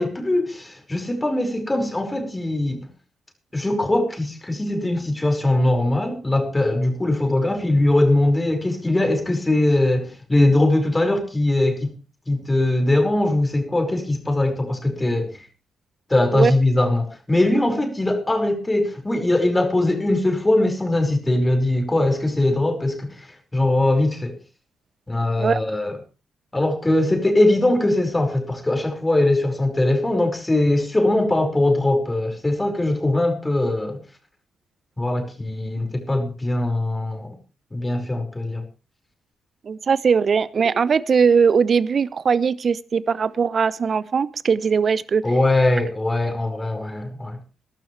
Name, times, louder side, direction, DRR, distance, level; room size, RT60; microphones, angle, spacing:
voice 1, 0.0-2.9 3.5-12.0 12.3-15.4 16.1-24.4 25.1-26.0 26.5-34.0 35.0-37.4 37.7-38.6 45.2-47.4, left 1 dB, 20° left, 5.2 m, -21 dB
voice 2, 39.6-45.3, right 6 dB, 50° right, 0.8 m, -20 dB
22.0 x 12.0 x 3.3 m
hypercardioid pair, 40°, 0 cm